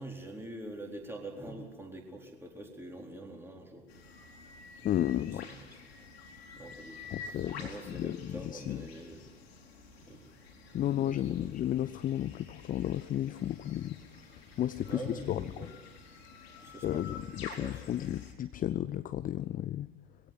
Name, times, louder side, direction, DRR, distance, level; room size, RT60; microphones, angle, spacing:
voice 1, 0.0-3.9 4.8-4.9 5.5-5.6 6.6-7.0 7.6-9.2 10.1-10.3 10.7-11.5 14.8-15.7 16.6-17.2 17.5-17.9, right 1 dB, 5° right, 1 dB, 4.2 m, -45 dB
sound 1, 3.9-18.3, left 4 dB, 65° left, 3.5 m, -50 dB
voice 2, 4.8-5.5 7.1-8.8 10.7-14.0 14.6-15.7 16.8-19.9, left 12 dB, 25° left, 14 dB, 0.6 m, -33 dB
22.0 x 16.5 x 7.8 m, 1.2 s
figure-of-eight pair, 75°, 33 cm